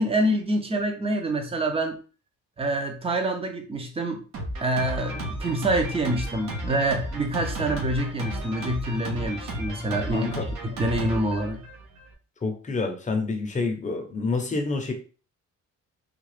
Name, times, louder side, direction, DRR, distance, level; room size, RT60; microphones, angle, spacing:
voice 1, 0.0-2.0 2.6-4.2 4.6-11.6, right 1 dB, 20° right, 4 dB, 0.7 m, -26 dB
Drum kit, 4.3-12.1, right 1 dB, 65° right, 1.2 m, -33 dB
voice 2, 10.1-10.5 12.4-14.9, left 3 dB, 25° left, 3 dB, 0.7 m, -28 dB
3.6 x 2.3 x 3.2 m, 0.36 s
cardioid pair, 130°, 31 cm